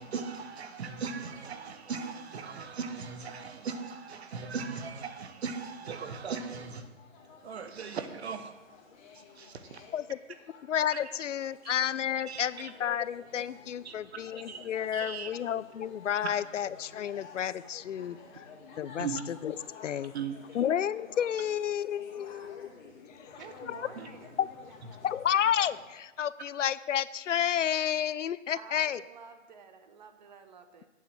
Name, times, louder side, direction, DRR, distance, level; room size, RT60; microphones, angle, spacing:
voice 1, 0.0-6.9 7.4-8.5 9.4-9.8 10.9-11.0 11.6-11.7 12.3-12.7 13.8-14.2 14.5-15.4 19.0-19.2 20.1-20.4, right 5 dB, 55° right, 1.2 m, -38 dB
sound 1, 6.4-25.9, left 5 dB, 35° left, 2.1 m, -52 dB
voice 2, 10.6-18.4 18.8-19.5 19.8-20.1 20.5-22.7 23.7-23.9 24.4-24.5 25.0-29.0, left 9 dB, 70° left, 0.6 m, -31 dB
voice 3, 23.2-24.5 28.5-30.9, right 6 dB, 35° right, 1.0 m, -50 dB
8.5 x 7.0 x 7.6 m
hypercardioid pair, 160°, 39 cm